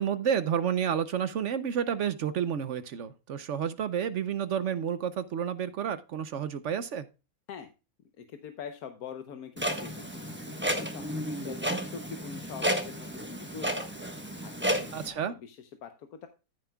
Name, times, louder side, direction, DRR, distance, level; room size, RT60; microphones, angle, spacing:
voice 1, 0.0-7.1 14.9-15.3, right 8 dB, 65° right, 13 dB, 0.9 m, -30 dB
voice 2, 8.2-11.6 11.9-14.0 14.4-16.3, left 7 dB, 85° left, 7 dB, 1.4 m, -44 dB
Clock, 9.6-15.1, equal, 10° right, 1.1 m, -32 dB
14.0 x 7.3 x 2.3 m, 0.31 s
omnidirectional pair, 1.5 m